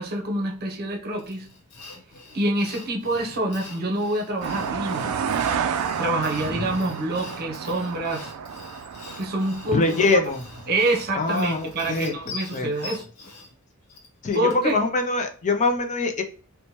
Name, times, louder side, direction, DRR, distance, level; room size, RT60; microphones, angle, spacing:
voice 1, 0.0-1.5 2.3-5.3 6.0-8.3 9.2-10.2 10.7-13.0 14.3-14.8, right 1 dB, 45° right, 0.7 m, -26 dB
Sawing, 1.2-14.8, left 3 dB, 85° left, 0.9 m, -44 dB
sound 1, 4.4-12.3, right 7 dB, 75° right, 0.3 m, -31 dB
voice 2, 9.7-10.4 11.1-12.1 12.5-12.7 14.2-16.2, left 3 dB, 35° left, 0.4 m, -23 dB
2.9 x 2.1 x 2.8 m
head